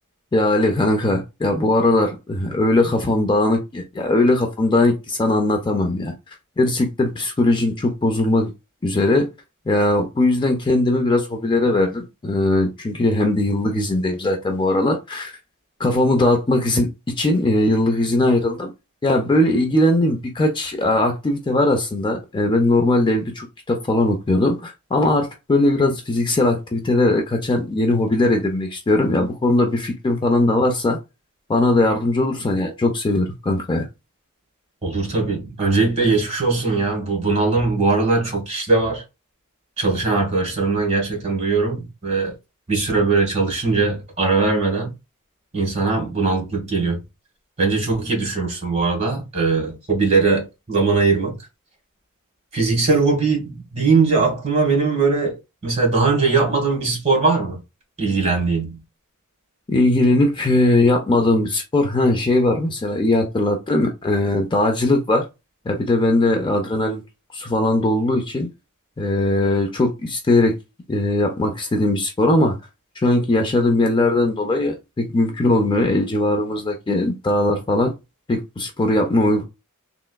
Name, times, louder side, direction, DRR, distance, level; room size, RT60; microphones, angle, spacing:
voice 1, 0.3-6.1 6.6-8.5 8.8-9.3 9.7-15.4 15.8-18.7 19.0-31.0 31.5-33.9 59.7-65.2 65.7-67.0 67.3-68.5 69.0-70.6 70.9-72.6 73.0-77.9 78.3-79.4, left 2 dB, 20° left, 0.4 m, -19 dB
voice 2, 34.8-39.0 39.8-42.3 42.7-44.9 45.5-47.0 47.6-51.4 52.5-57.6 58.0-58.8, right 4 dB, 30° right, 1.4 m, -20 dB
3.3 x 2.9 x 2.3 m
head